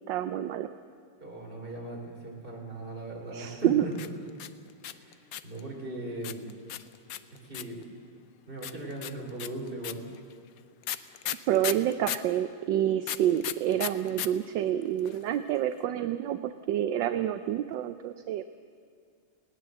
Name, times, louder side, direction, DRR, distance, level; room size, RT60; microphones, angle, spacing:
voice 1, 0.1-0.7 3.3-3.8 11.5-18.4, right 11 dB, 70° right, 10 dB, 1.2 m, -28 dB
voice 2, 1.2-3.9 4.9-6.5 7.3-7.8 8.5-10.0, right 2 dB, 25° right, -1 dB, 4.2 m, -39 dB
sound 1, 3.9-5.6 6.2-7.8 8.6-12.3 13.0-14.3 14.5-14.6 14.8-15.3, left 11 dB, 80° left, 0.8 m, -35 dB
20.5 x 18.0 x 7.7 m, 2.3 s
omnidirectional pair, 2.4 m